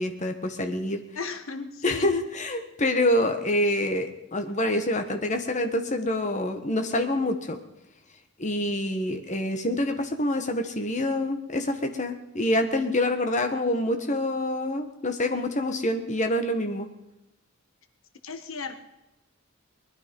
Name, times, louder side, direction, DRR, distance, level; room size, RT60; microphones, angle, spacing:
voice 1, 0.0-1.0 1.8-7.6 8.4-16.9, left 1 dB, 35° left, 5 dB, 1.5 m, -26 dB
voice 2, 1.1-2.1 18.2-18.8, left 4 dB, 80° left, 8 dB, 1.4 m, -35 dB
20.5 x 12.5 x 5.4 m, 0.93 s
head